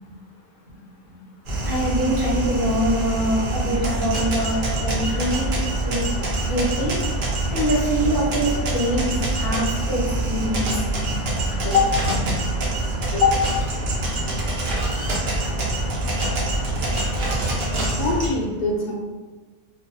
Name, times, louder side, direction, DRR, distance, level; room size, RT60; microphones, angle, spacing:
sound 1, 1.4-18.3, right 2 dB, 75° right, 0.4 m, -25 dB
voice 1, 1.6-5.5 5.8-6.0 6.4-7.0 7.5-10.0 10.3-10.7 11.1-11.5 12.3-12.4, equal, 40° right, -10 dB, 0.9 m, -24 dB
voice 2, 18.0-18.9, left 5 dB, 70° left, 0 dB, 0.9 m, -21 dB
2.5 x 2.3 x 2.4 m, 1.3 s
omnidirectional pair, 1.7 m